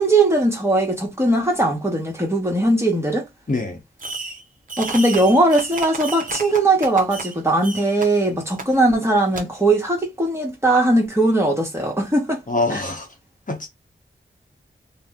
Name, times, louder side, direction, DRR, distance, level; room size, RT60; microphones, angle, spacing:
voice 1, 0.0-3.3 4.8-12.4 12.7-12.8, right 2 dB, 15° right, 1.1 m, -19 dB
voice 2, 3.5-3.8 12.5-13.1 13.5-13.7, left 2 dB, 45° left, 0.8 m, -24 dB
Fireworks, 4.0-4.4 4.7-7.3 7.6-8.1 8.6-8.7 9.3-9.4, right 3 dB, 45° right, 0.7 m, -31 dB
2.5 x 2.0 x 3.4 m
wide cardioid pair, 85°, 20 cm